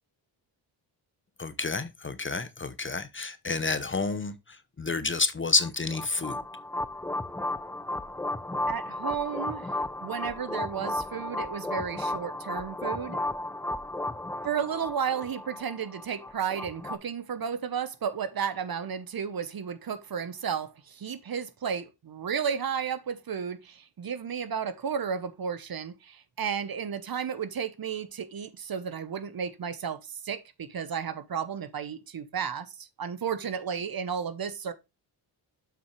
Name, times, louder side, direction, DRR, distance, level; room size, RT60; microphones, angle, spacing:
voice 1, 1.4-6.4, left 3 dB, 25° left, 0.8 m, -29 dB
sound 1, 5.6-17.0, left 1 dB, 5° left, 0.4 m, -34 dB
voice 2, 8.7-9.7 10.0-13.2 14.4-34.7, right 7 dB, 45° right, 1.0 m, -33 dB
7.3 x 5.8 x 3.2 m
cardioid pair, 70°, 48 cm